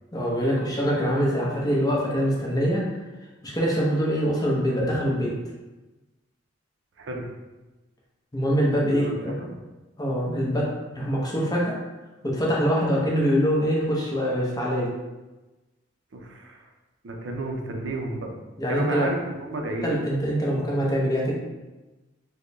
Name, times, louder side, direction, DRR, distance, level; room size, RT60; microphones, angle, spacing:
voice 1, 0.1-2.8 3.4-5.3 8.3-9.4 10.0-10.7 10.9-11.8 12.2-14.9 18.6-19.1 19.8-21.3, equal, 20° left, -4 dB, 0.7 m, -24 dB
voice 2, 7.0-7.3 8.9-9.6 16.1-16.6 17.0-18.4 18.7-20.0, right 2 dB, 75° right, 2 dB, 0.5 m, -32 dB
4.3 x 2.1 x 3.1 m, 1.1 s
head